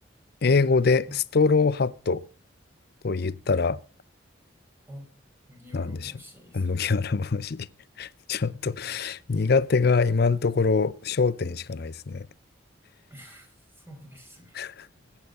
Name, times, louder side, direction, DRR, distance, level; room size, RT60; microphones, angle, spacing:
voice 1, 0.4-2.2 3.0-3.8 5.7-6.1 6.5-7.7 8.0-12.3 14.5-14.9, left 4 dB, 55° left, 0.6 m, -24 dB
voice 2, 5.5-6.8 8.6-9.3 13.1-14.6, equal, 10° right, 5.0 m, -48 dB
21.0 x 9.1 x 5.4 m
head